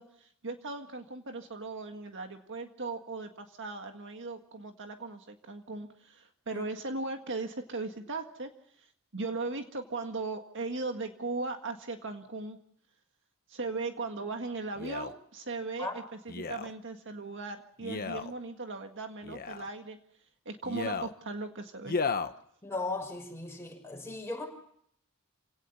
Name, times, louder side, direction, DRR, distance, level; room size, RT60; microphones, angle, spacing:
voice 1, 0.0-8.5 9.1-12.6 13.5-16.0 16.3-20.0 20.5-22.0, right 3 dB, 60° right, 5 dB, 1.8 m, -38 dB
Male speech man speaking, 14.8-15.1 16.3-16.7 17.8-18.3 19.2-19.7 20.6-21.1 21.8-22.3 23.0-23.1, left 4 dB, 45° left, 1.2 m, -34 dB
voice 2, 22.6-24.4, left 2 dB, 10° left, 1 dB, 6.1 m, -37 dB
27.5 x 18.0 x 7.1 m, 0.69 s
head